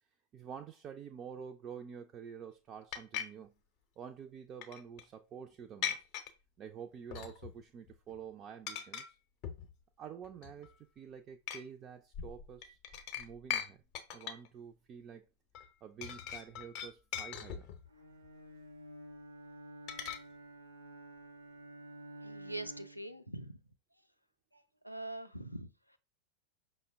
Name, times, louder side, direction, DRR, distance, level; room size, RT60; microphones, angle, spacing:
voice 1, 0.3-3.5 4.0-6.0 6.6-9.2 10.0-12.8 13.2-13.8 14.1-15.2 15.8-17.7, right 7 dB, 30° right, 0.3 m, -48 dB
sound 1, 2.9-3.2 4.6-5.0 5.8-6.3 7.1-7.6 7.9-8.2 8.7-9.1 9.4-9.7 10.2-10.7 11.5-11.6 12.1-13.7 13.9-14.5 15.5-15.7 16.0-17.9 19.9-20.2, left 9 dB, 45° left, 0.6 m, -40 dB
Bowed string instrument, 17.9-23.2, right 1 dB, 75° right, 0.6 m, -51 dB
voice 2, 22.2-23.6 24.5-26.0, right 1 dB, 90° left, 0.4 m, -44 dB
5.3 x 2.1 x 3.4 m
figure-of-eight pair, 90°, 0 cm